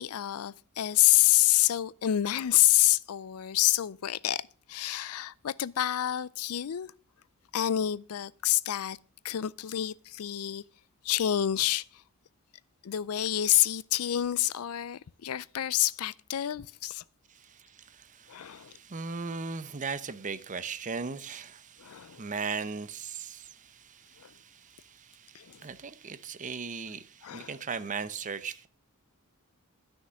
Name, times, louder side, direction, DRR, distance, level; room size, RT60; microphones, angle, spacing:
voice 1, 0.0-6.9 7.5-9.0 9.2-10.6 11.0-12.0 12.8-17.0 18.3-18.7 21.8-22.2 24.2-24.3 25.3-25.6 27.2-27.5, left 13 dB, 75° left, 0.4 m, -27 dB
voice 2, 17.3-28.7, right 5 dB, 35° right, 0.7 m, -38 dB
12.0 x 6.6 x 6.3 m
head